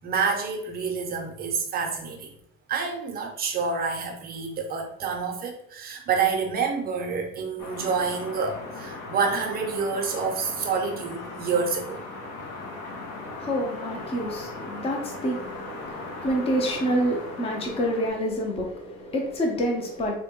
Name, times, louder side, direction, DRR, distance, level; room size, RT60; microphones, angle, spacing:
voice 1, 0.0-2.3 2.7-12.0, right 5 dB, 30° right, 0.6 m, -28 dB
sound 1, 7.6-18.1, left 3 dB, 55° left, 0.8 m, -38 dB
voice 2, 13.2-20.2, equal, 20° left, 0.6 m, -28 dB
3.8 x 2.1 x 3.6 m
cardioid pair, 160°, 29 cm